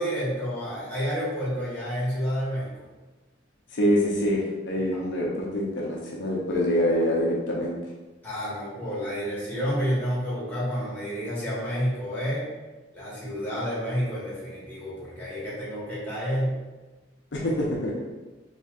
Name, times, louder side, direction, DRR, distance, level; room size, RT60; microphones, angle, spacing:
voice 1, 0.0-2.7 4.9-5.0 8.2-12.4 12.9-16.6, equal, 10° left, -9 dB, 1.5 m, -29 dB
voice 2, 3.7-7.8 17.3-18.0, equal, 75° left, -3 dB, 0.6 m, -25 dB
4.2 x 3.1 x 2.4 m, 1.2 s
head